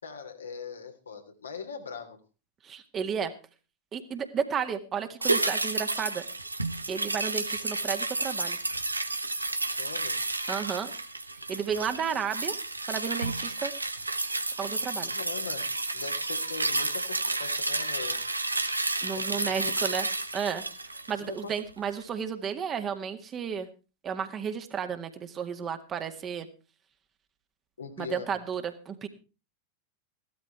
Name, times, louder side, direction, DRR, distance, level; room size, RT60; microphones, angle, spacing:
voice 1, 0.0-2.2 9.8-10.2 15.1-15.7 15.9-18.2 19.1-19.7 21.2-21.5 27.8-28.4, left 5 dB, 70° left, 4 dB, 3.0 m, -41 dB
voice 2, 2.6-3.3 3.9-6.3 6.9-8.6 10.5-10.9 11.5-12.6 12.9-13.7 14.6-15.1 19.0-20.1 20.3-20.6 21.1-23.7 24.0-26.5 28.0-29.1, right 7 dB, 25° right, 7 dB, 1.9 m, -32 dB
sound 1, 5.2-21.7 22.0-22.1, right 2 dB, 85° right, 1.2 m, -31 dB
16.0 x 13.0 x 4.6 m, 0.33 s
figure-of-eight pair, 90°, 0 cm